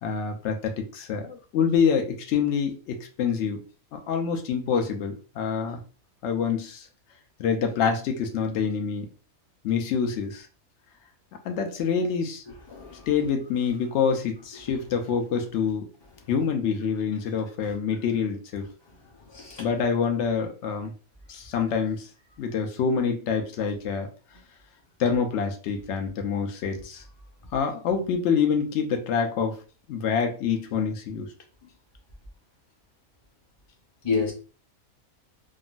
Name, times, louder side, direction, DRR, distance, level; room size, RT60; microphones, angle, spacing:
voice 1, 0.0-3.6 3.9-5.8 6.2-6.9 7.4-9.1 9.6-10.5 11.4-12.4 13.1-15.9 16.3-18.6 19.6-20.9 21.3-22.1 22.4-24.1 25.0-27.0 27.5-29.6 29.9-31.3, left 6 dB, 60° left, 0.8 m, -26 dB
voice 2, 12.7-13.1 14.7-14.8 19.3-19.7 34.0-34.3, left 5 dB, 25° left, 0.7 m, -29 dB
3.7 x 2.0 x 2.5 m
omnidirectional pair, 1.5 m